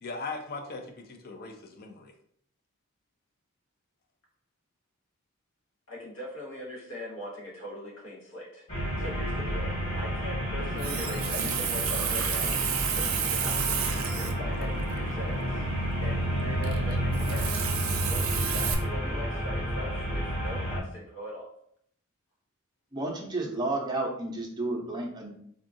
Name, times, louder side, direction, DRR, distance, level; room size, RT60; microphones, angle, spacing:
voice 1, 0.0-2.1, left 3 dB, 45° left, 5 dB, 0.5 m, -39 dB
voice 2, 5.9-8.7 9.0-17.5 18.1-21.5, left 1 dB, 65° left, -3 dB, 1.1 m, -41 dB
sound 1, 8.7-20.8, equal, 30° left, 1.0 m, -30 dB
Water tap faucet, 10.6-18.7, right 7 dB, 70° right, 0.4 m, -32 dB
voice 3, 22.9-25.3, right 2 dB, 20° right, -1 dB, 0.6 m, -31 dB
3.7 x 2.3 x 2.6 m, 0.66 s
head